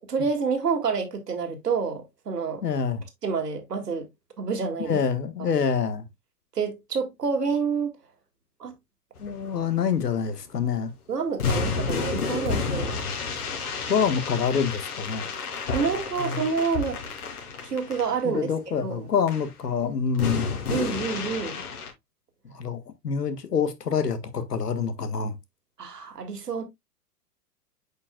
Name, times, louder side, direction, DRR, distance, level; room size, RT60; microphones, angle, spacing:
voice 1, 0.1-2.6 3.2-4.1 4.4-5.0 5.4-5.5 6.5-7.9 8.6-8.7 11.1-13.0 15.7-17.0 17.6-18.5 18.8-19.1 20.7-21.6 25.8-26.6, right 5 dB, 80° right, 2.2 m, -28 dB
voice 2, 2.6-3.0 4.9-6.0 9.2-10.9 13.9-15.3 16.2-16.4 18.2-20.5 22.4-25.3, left 6 dB, 80° left, 1.5 m, -26 dB
sound 1, 9.2-10.2 10.5-10.6 11.4-18.2 19.3-19.5 20.1-21.9, left 4 dB, 65° left, 3.1 m, -30 dB
8.4 x 5.5 x 2.3 m
hypercardioid pair, 110°, 47 cm